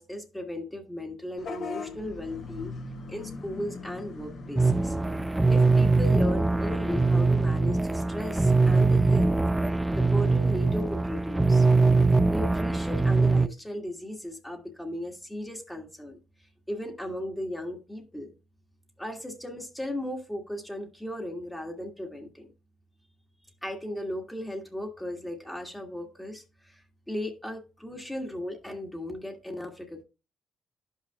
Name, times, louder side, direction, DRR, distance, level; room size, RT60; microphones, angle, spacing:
voice 1, 0.0-2.7 3.1-4.9 5.5-9.4 9.9-11.6 11.9-16.2 16.7-18.3 19.0-22.5 23.6-30.0, left 1 dB, 10° left, 1.7 m, -36 dB
Vehicle horn car horn honking / Bus, 1.4-7.5, left 4 dB, 70° left, 2.2 m, -41 dB
sound 1, 4.6-13.5, right 3 dB, 10° right, 0.4 m, -22 dB
11.5 x 5.7 x 2.4 m
cardioid pair, 90°, 0 cm